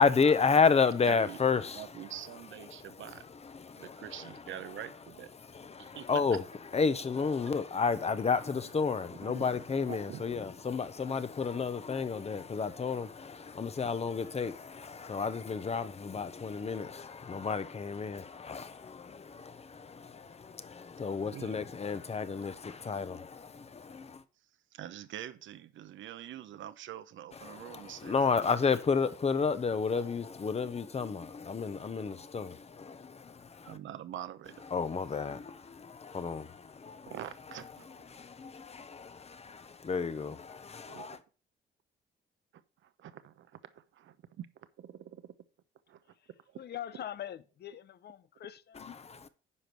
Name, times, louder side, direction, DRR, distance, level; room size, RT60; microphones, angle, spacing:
voice 1, 0.0-2.1 2.7-4.7 5.4-6.4 6.7-24.2 27.4-33.8 34.7-37.1 37.8-41.2 48.7-49.3, left 5 dB, 30° left, 1.0 m, -32 dB
voice 2, 1.0-1.4 1.7-3.2 3.8-5.3 5.8-6.2 9.2-9.5 9.9-10.4 11.0-11.1 21.3-21.6 24.7-28.3 33.6-34.7 37.1-38.0 40.9-41.1 42.8-45.3 45.9-46.0 46.5-46.6 46.9-47.0, right 11 dB, 75° right, 1.0 m, -45 dB
voice 3, 46.6-49.0, left 11 dB, 55° left, 0.8 m, -43 dB
9.9 x 5.2 x 6.1 m
cardioid pair, 90°, 20 cm